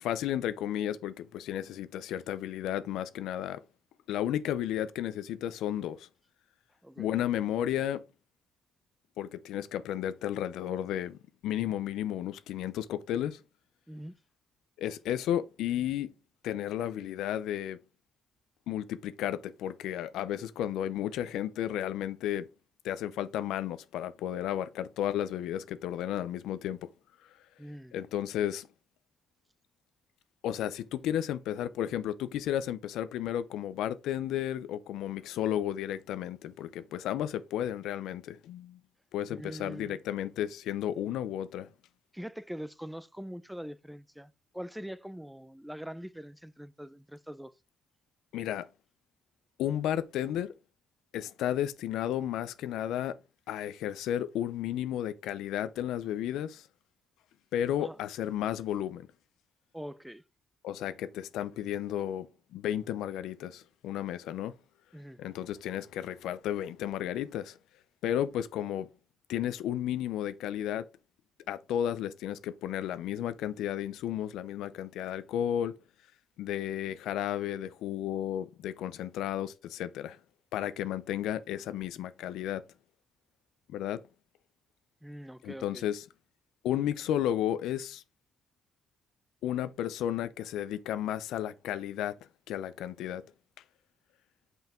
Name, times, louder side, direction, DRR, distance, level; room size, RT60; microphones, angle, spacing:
voice 1, 0.0-3.6 4.1-6.1 7.0-8.0 9.2-13.4 14.8-16.1 16.4-17.8 18.7-22.5 22.8-26.9 27.9-28.7 30.4-38.8 39.1-41.7 48.3-48.7 49.6-50.5 51.1-53.1 53.5-56.7 57.5-59.1 60.6-62.3 62.5-64.5 65.2-67.6 68.0-68.9 69.3-70.8 71.5-75.7 76.4-80.2 80.5-82.6 83.7-84.0 85.4-86.0 86.6-88.0 89.4-92.1 92.5-93.2, left 11 dB, 85° left, 0.6 m, -33 dB
voice 2, 27.6-27.9 39.3-40.0 42.1-47.5 57.8-58.0 59.7-60.2 64.9-65.2 85.0-85.8, equal, 5° right, 0.5 m, -43 dB
5.7 x 5.5 x 4.4 m
cardioid pair, 75°, 0 cm